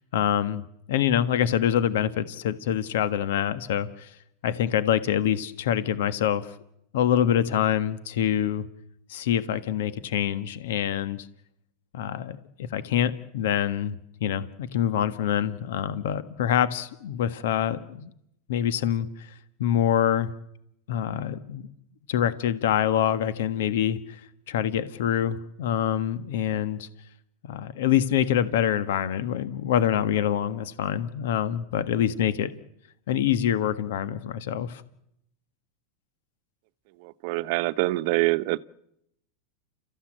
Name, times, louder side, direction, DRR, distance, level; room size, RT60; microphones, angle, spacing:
voice 1, 0.1-0.6 0.9-4.1 4.4-6.4 6.9-8.6 9.1-11.3 11.9-13.9 14.2-18.1 18.5-19.3 19.6-20.3 20.9-21.7 22.1-24.0 24.5-26.9 27.5-32.5 33.1-34.8, left 10 dB, 75° left, 1.5 m, -25 dB
voice 2, 37.2-38.6, right 20 dB, 55° right, 0.9 m, -24 dB
30.0 x 14.5 x 9.0 m
supercardioid pair, 135°, 0 cm